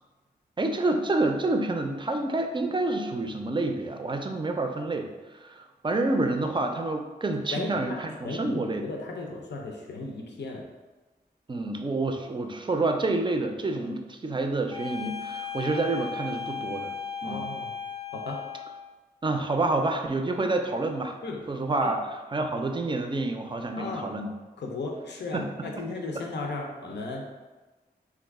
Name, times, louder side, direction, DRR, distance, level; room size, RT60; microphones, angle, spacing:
voice 1, 0.6-8.8 11.5-16.9 17.2-17.5 19.2-21.2 21.5-24.3 25.3-25.9 26.1-26.2, right 2 dB, 30° right, 4 dB, 0.4 m, -28 dB
voice 2, 7.5-10.6 17.2-17.7 18.1-18.4 21.2-21.4 21.8-21.9 23.8-24.1 24.6-27.2, left 3 dB, 80° left, 1 dB, 0.5 m, -35 dB
sound 1, 14.7-18.9, left 6 dB, 30° left, 0.6 m, -36 dB
3.0 x 2.4 x 3.5 m, 1.2 s
cardioid pair, 45°, 18 cm